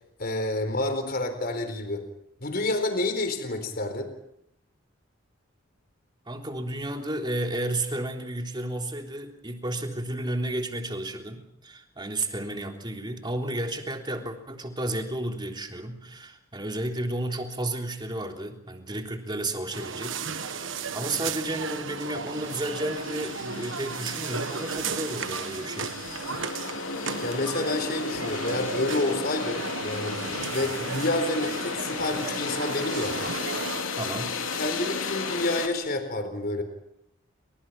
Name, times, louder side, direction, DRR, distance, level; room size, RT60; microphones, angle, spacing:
voice 1, 0.2-2.1 2.4-4.1 27.2-33.2 34.5-36.6, left 2 dB, 50° left, 7 dB, 4.3 m, -29 dB
voice 2, 6.3-26.0 30.6-30.9 33.9-34.3, right 1 dB, 20° right, 3 dB, 3.5 m, -32 dB
sound 1, 19.7-19.8 20.1-35.7, left 4 dB, 75° left, 3.2 m, -35 dB
sound 2, 19.7-33.8, right 5 dB, 65° right, 1.4 m, -35 dB
30.0 x 25.5 x 5.9 m, 0.79 s
head